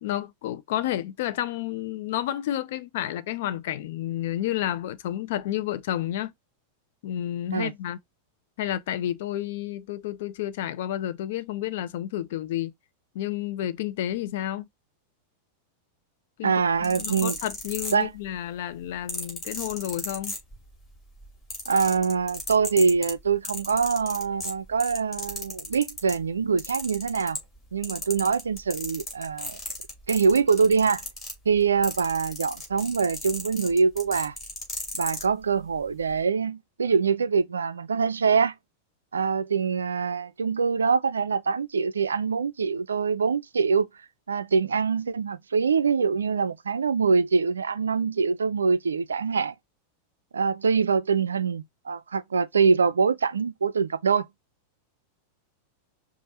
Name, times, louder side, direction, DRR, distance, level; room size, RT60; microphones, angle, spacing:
voice 1, 0.0-6.3 7.0-8.0 8.6-12.7 13.1-14.7 16.4-16.5 16.8-20.3, left 12 dB, 55° left, 0.6 m, -30 dB
voice 2, 16.4-17.4 17.9-18.1 21.7-27.4 27.7-29.6 30.1-31.0 31.5-34.3 34.9-38.5 39.1-43.9 44.3-49.5 50.3-54.3, right 5 dB, 70° right, 0.4 m, -24 dB
sound 1, 16.7-18.4 19.1-20.8 21.2-26.2 26.6-27.6 27.8-35.3 36.0-36.2, left 2 dB, 20° left, 2.6 m, -35 dB
5.2 x 2.5 x 4.1 m
figure-of-eight pair, 90°, 0 cm